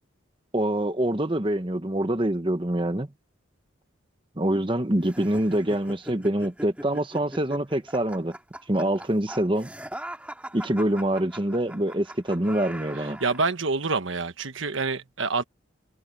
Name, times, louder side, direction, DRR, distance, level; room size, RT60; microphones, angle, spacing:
voice 1, 0.5-3.1 4.4-8.3 8.7-9.7 10.5-13.2, right 1 dB, 25° right, 1.1 m, -25 dB
sound 1, 5.0-13.5, right 1 dB, 5° right, 2.5 m, -41 dB
voice 2, 12.9-15.4, right 4 dB, 75° right, 1.3 m, -27 dB
head